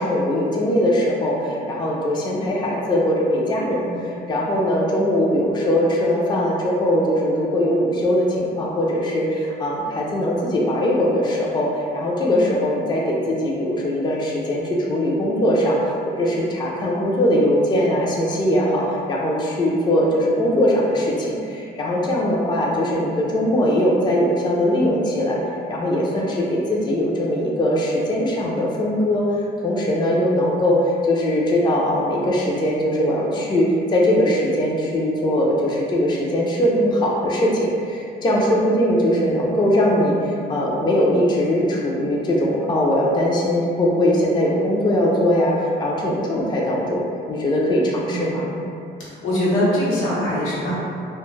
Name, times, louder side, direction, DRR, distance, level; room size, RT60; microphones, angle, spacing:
voice 1, 0.0-25.4 25.7-29.3 29.6-48.5, left 1 dB, 20° left, -3 dB, 0.4 m, -21 dB
voice 2, 48.0-48.6 49.0-50.8, left 1 dB, 90° left, -8 dB, 0.8 m, -23 dB
2.1 x 2.0 x 3.0 m, 2.5 s
cardioid pair, 90°, 20 cm